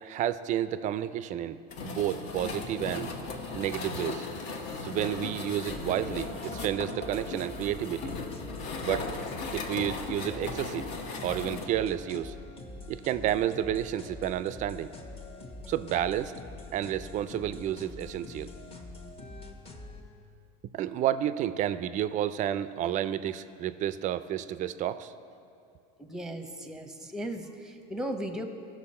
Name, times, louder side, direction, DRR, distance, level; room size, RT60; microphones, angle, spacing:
voice 1, 0.0-3.1 3.5-4.2 4.8-8.1 8.8-9.1 9.5-10.8 11.2-12.3 12.9-14.9 15.7-16.3 16.7-18.5 20.7-25.1, right 11 dB, 40° right, 14 dB, 0.4 m, -31 dB
sound 1, 1.7-11.7, left 3 dB, 55° left, 1.1 m, -37 dB
sound 2, 5.2-5.4 5.9-6.0 6.6-6.7 7.3-7.5 8.0-8.2 8.7-8.9 9.4-9.6 10.1-10.2 10.8-10.9 11.4-11.5 12.2-12.3, left 10 dB, 85° left, 0.6 m, -42 dB
sound 3, 5.7-20.0, left 2 dB, 30° left, 1.1 m, -45 dB
voice 2, 26.0-28.5, right 1 dB, 5° right, 6 dB, 0.8 m, -36 dB
16.0 x 6.1 x 4.3 m, 2.5 s
supercardioid pair, 130°, 20 cm